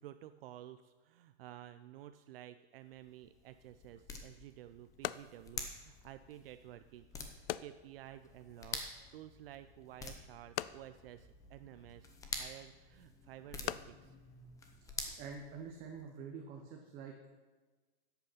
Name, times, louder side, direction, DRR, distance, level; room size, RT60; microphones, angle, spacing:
voice 1, 0.0-14.2 15.1-15.2, right 13 dB, 60° right, 10 dB, 0.5 m, -53 dB
sound 1, 2.8-16.1, left 3 dB, 10° left, 0.8 m, -48 dB
sound 2, 4.0-15.3, left 14 dB, 60° left, 0.4 m, -47 dB
voice 2, 15.2-17.1, right 5 dB, 25° right, 2 dB, 1.0 m, -46 dB
12.0 x 8.2 x 5.7 m, 1.3 s
supercardioid pair, 160°, 32 cm